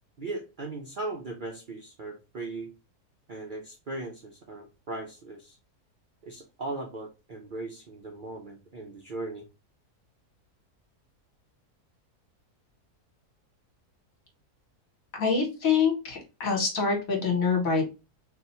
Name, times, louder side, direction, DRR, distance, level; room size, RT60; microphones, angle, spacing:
voice 1, 0.2-2.7 3.3-5.6 6.2-9.5, right 2 dB, 50° right, 1 dB, 0.6 m, -38 dB
voice 2, 15.1-17.9, left 5 dB, 60° left, 0 dB, 1.8 m, -25 dB
3.3 x 2.7 x 4.2 m, 0.28 s
omnidirectional pair, 1.7 m